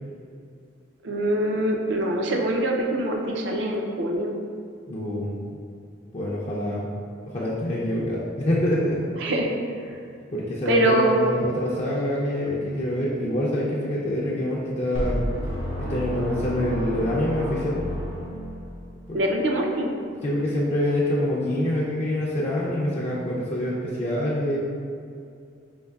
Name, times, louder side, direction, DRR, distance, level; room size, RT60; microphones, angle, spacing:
voice 1, 1.0-4.4 9.2-9.5 10.7-11.3 19.1-19.9, right 1 dB, 65° right, 1 dB, 0.5 m, -24 dB
voice 2, 4.9-5.4 6.1-6.9 7.3-9.0 10.3-15.3 15.8-17.8 19.1-19.2 20.2-24.6, left 1 dB, 35° left, -6 dB, 0.4 m, -26 dB
sound 1, 14.9-19.0, equal, 85° right, 1.1 m, -30 dB
5.3 x 3.1 x 2.3 m, 2.4 s
head